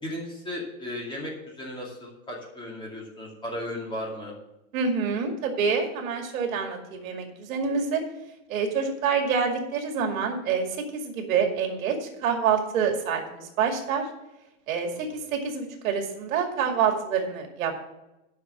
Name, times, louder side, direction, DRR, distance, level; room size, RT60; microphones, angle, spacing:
voice 1, 0.0-4.3 14.9-15.2, left 1 dB, 10° left, -2 dB, 2.5 m, -36 dB
voice 2, 4.7-8.0 8.5-10.7 10.9-14.0 14.7-17.7, right 6 dB, 65° right, 3 dB, 2.3 m, -27 dB
10.5 x 5.8 x 7.1 m, 0.97 s
supercardioid pair, 155°, 43 cm